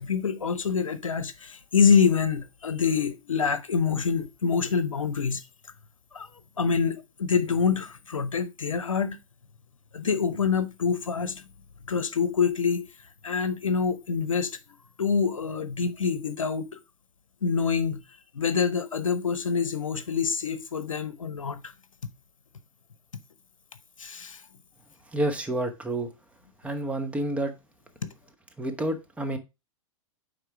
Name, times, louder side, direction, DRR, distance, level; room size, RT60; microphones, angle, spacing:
voice 1, 0.0-5.4 6.1-6.3 6.6-9.2 9.9-11.4 11.8-12.9 13.2-14.6 15.0-16.8 17.4-18.0 18.3-21.7 24.0-24.4 28.0-28.1, left 6 dB, 80° left, 0.8 m, -26 dB
voice 2, 25.1-26.1 26.6-27.5 28.6-29.4, right 1 dB, 10° right, 1.1 m, -29 dB
9.1 x 3.7 x 4.7 m
figure-of-eight pair, 100°, 17 cm